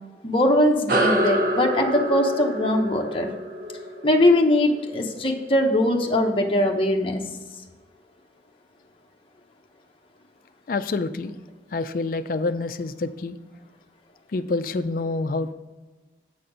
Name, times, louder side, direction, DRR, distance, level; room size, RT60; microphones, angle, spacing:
voice 1, 0.2-3.3 4.0-7.2, left 1 dB, 30° left, 1 dB, 0.8 m, -21 dB
sound 1, 0.9-5.7, right 1 dB, 50° right, 0.9 m, -27 dB
voice 2, 10.7-11.4 11.7-13.4 14.3-15.5, left 3 dB, 50° left, 11 dB, 0.4 m, -27 dB
7.7 x 4.2 x 4.9 m, 1.2 s
head